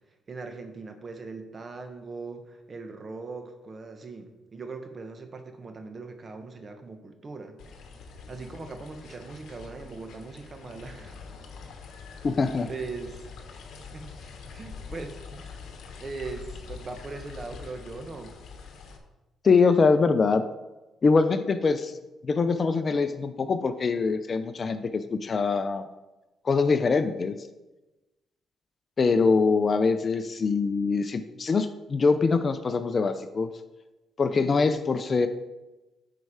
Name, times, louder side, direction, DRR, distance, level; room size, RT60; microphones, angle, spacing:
voice 1, 0.1-7.6 8.3-11.2 12.7-13.2 13.5-13.6 13.9-14.1 14.5-15.5 16.0-18.3, right 3 dB, 35° right, 6 dB, 1.2 m, -40 dB
sound 1, 7.6-19.0, left 5 dB, 70° left, 1.2 m, -44 dB
voice 2, 12.2-12.7 19.4-20.4 21.0-22.0 22.2-25.8 26.4-27.3 29.0-33.5 34.2-35.3, left 4 dB, 40° left, 10 dB, 0.6 m, -23 dB
9.7 x 4.6 x 5.0 m, 1.1 s
cardioid pair, 90°, 0 cm